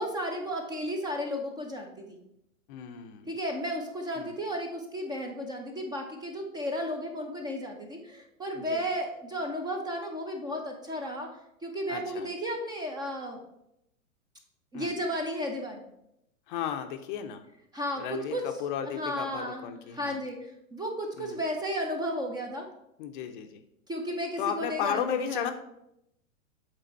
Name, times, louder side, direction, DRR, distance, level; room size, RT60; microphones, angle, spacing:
voice 1, 0.0-2.2 3.3-11.3 11.6-13.4 14.7-15.8 17.7-18.4 18.8-22.7 23.9-25.5, equal, 10° right, 3 dB, 0.6 m, -34 dB
voice 2, 2.7-3.3 4.2-4.3 8.5-8.8 11.9-12.3 14.7-14.9 16.5-17.4 18.0-20.2 21.2-21.4 23.0-23.6 24.4-25.5, left 9 dB, 35° left, 7 dB, 0.7 m, -34 dB
8.0 x 3.8 x 4.4 m, 0.80 s
figure-of-eight pair, 105°, 42 cm